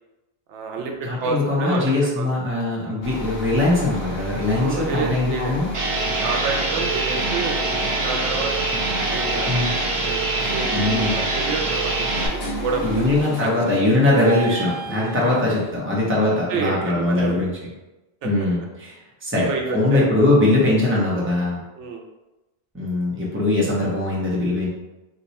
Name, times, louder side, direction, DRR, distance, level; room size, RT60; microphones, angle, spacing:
voice 1, 0.5-2.3 4.5-5.6 6.2-8.7 9.1-9.5 10.1-10.2 10.5-13.1 13.4-13.5 14.9-15.2 16.5-17.5 18.2-18.3 19.4-20.1 21.8-22.0, right 4 dB, 85° right, 2 dB, 0.9 m, -29 dB
voice 2, 1.0-5.7 9.5-9.7 10.7-11.2 12.8-17.5 18.2-18.9 19.2-21.6 22.7-24.7, left 2 dB, 15° right, -5 dB, 0.7 m, -21 dB
sound 1, 3.0-13.2, right 1 dB, 60° left, 0.9 m, -33 dB
sound 2, 5.7-12.3, right 2 dB, 55° right, 0.3 m, -24 dB
sound 3, 9.0-9.1 10.0-10.3 10.6-15.7, equal, 90° left, 1.3 m, -34 dB
2.9 x 2.3 x 4.0 m, 1.0 s
omnidirectional pair, 1.2 m